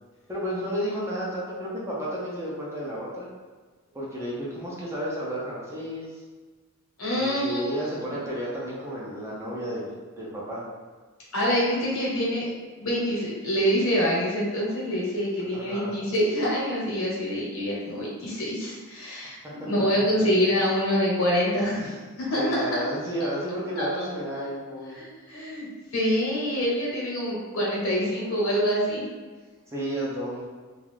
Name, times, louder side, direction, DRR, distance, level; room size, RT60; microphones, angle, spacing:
voice 1, 0.3-3.3 3.9-6.1 7.1-10.6 15.5-15.9 22.3-25.0 29.7-30.5, equal, 15° right, -6 dB, 0.5 m, -32 dB
voice 2, 7.0-7.7 11.3-12.5 12.8-22.0 22.3-22.8 23.8-24.0 24.9-25.7 25.9-29.0, equal, 70° left, -5 dB, 1.0 m, -26 dB
2.5 x 2.3 x 3.3 m, 1.4 s
head